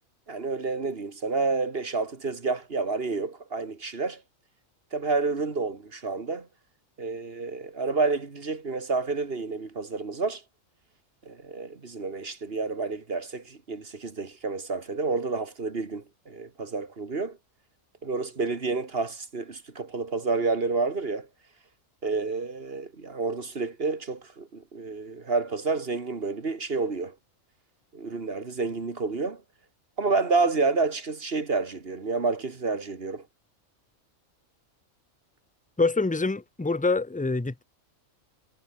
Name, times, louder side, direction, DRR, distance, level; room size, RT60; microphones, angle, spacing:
voice 1, 0.3-4.2 4.9-6.5 7.0-10.4 11.3-17.4 18.0-21.3 22.0-27.1 27.9-29.4 30.0-33.2, right 3 dB, 50° right, 2.1 m, -29 dB
voice 2, 35.8-37.6, left 3 dB, 10° left, 0.5 m, -25 dB
omnidirectional pair, 1.4 m